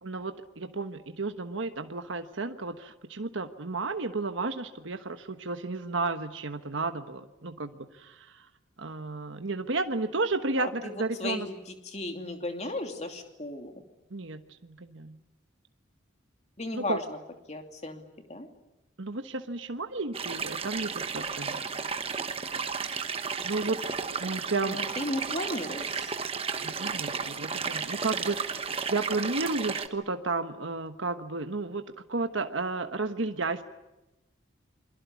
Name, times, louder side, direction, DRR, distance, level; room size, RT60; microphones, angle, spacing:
voice 1, 0.0-8.4 8.8-11.5 14.1-15.2 16.7-17.0 19.0-21.6 23.4-23.8 24.2-24.8 26.6-31.8 32.1-33.6, right 3 dB, 75° right, 8 dB, 1.3 m, -32 dB
voice 2, 10.6-10.9 11.2-13.7 16.6-17.2 17.5-18.0 18.3-18.5 24.7-26.1, left 2 dB, 35° left, 4 dB, 2.8 m, -35 dB
sound 1, 20.1-29.9, right 5 dB, 30° right, 1.3 m, -33 dB
28.0 x 23.5 x 8.4 m, 0.99 s
head